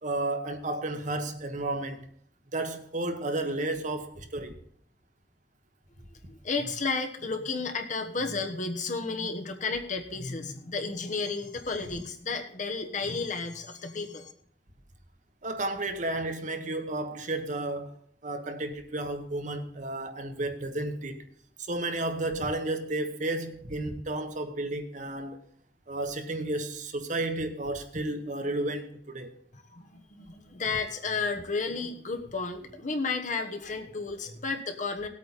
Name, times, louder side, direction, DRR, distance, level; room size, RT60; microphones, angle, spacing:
voice 1, 0.0-2.1 2.5-4.6 15.4-17.9 18.2-21.3 21.7-25.4 25.9-29.3, right 2 dB, 45° right, 1.2 m, -32 dB
voice 2, 6.3-14.3 29.5-35.1, left 4 dB, 45° left, 1.2 m, -32 dB
18.0 x 8.6 x 4.2 m
head